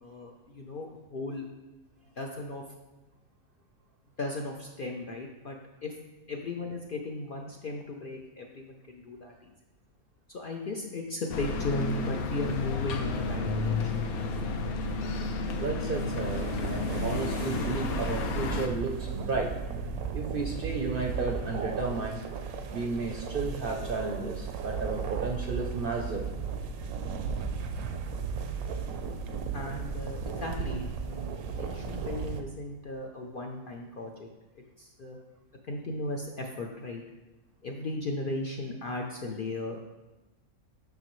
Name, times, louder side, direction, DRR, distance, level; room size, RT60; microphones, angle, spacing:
voice 1, 0.0-1.4 2.2-2.6 4.2-5.6 5.8-5.9 6.3-9.5 10.3-13.5 13.8-13.9 29.5-34.3 34.5-35.2 35.7-37.0 37.6-39.8, left 2 dB, 65° left, 1 dB, 0.5 m, -36 dB
City Street Sounds - Auckland New Zealand, 11.3-18.7, left 3 dB, 85° left, 1.1 m, -31 dB
voice 2, 15.6-19.5 20.1-22.2 22.7-26.3, right 4 dB, 60° right, 1 dB, 0.6 m, -33 dB
sound 1, 15.9-32.4, right 5 dB, 85° right, 1.1 m, -35 dB
7.0 x 6.0 x 3.0 m, 1.1 s
omnidirectional pair, 1.5 m